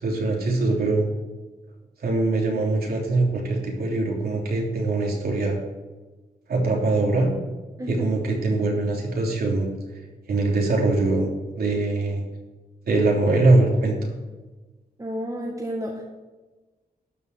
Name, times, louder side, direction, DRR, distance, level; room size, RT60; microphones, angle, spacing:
voice 1, 0.0-1.1 2.0-5.6 6.5-7.3 7.9-9.7 10.3-11.3 11.5-12.2 12.9-14.0, right 2 dB, 75° right, -1 dB, 3.3 m, -22 dB
voice 2, 15.0-16.0, equal, 20° right, -1 dB, 1.7 m, -31 dB
12.5 x 5.6 x 7.8 m, 1.2 s
wide cardioid pair, 105°, 16 cm